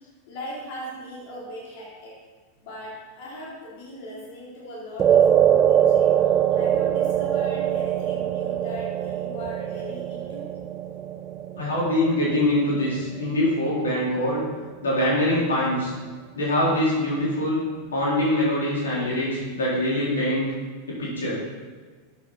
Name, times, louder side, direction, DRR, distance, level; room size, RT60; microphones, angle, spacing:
voice 1, 0.3-2.2 2.6-10.5, equal, 60° left, -6 dB, 3.8 m, -39 dB
sound 1, 5.0-13.5, right 10 dB, 30° right, 0.5 m, -23 dB
voice 2, 11.6-14.4 14.8-15.9 16.3-17.6 17.9-20.4 20.9-21.4, left 1 dB, 85° left, -6 dB, 4.1 m, -23 dB
12.5 x 8.7 x 4.3 m, 1.4 s
hypercardioid pair, 95°, 0 cm